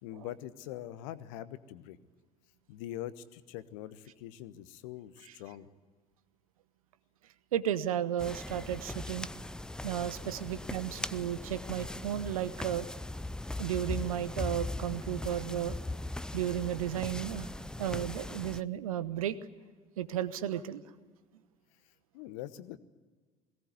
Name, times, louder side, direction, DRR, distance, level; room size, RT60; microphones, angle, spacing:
voice 1, 0.0-2.0 2.7-5.7 22.1-22.8, left 13 dB, 60° left, 15 dB, 1.1 m, -43 dB
voice 2, 7.5-9.3 9.8-12.9 13.6-15.8 16.3-17.5 17.8-19.4 20.0-20.8, right 11 dB, 70° right, 15 dB, 1.1 m, -33 dB
sound 1, 8.2-18.6, left 2 dB, 5° left, 0.6 m, -39 dB
21.5 x 18.0 x 9.3 m, 1.4 s
figure-of-eight pair, 60°, 19 cm